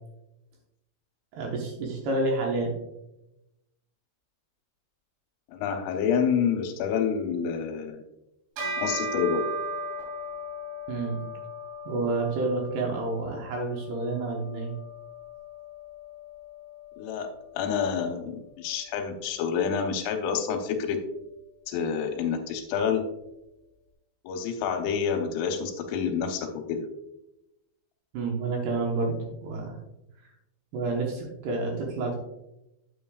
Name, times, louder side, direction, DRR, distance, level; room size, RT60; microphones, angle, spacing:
voice 1, 1.3-2.7 10.9-11.2 11.9-14.7 28.1-29.8 30.7-32.2, right 3 dB, 70° right, 0 dB, 2.7 m, -29 dB
voice 2, 5.5-8.0 8.8-9.4 17.0-21.0 21.7-23.0 24.2-26.9, left 7 dB, 85° left, 4 dB, 3.4 m, -28 dB
Bell, 8.6-18.2, equal, 90° right, 5.8 m, -38 dB
9.5 x 8.3 x 2.3 m, 0.90 s
omnidirectional pair, 5.6 m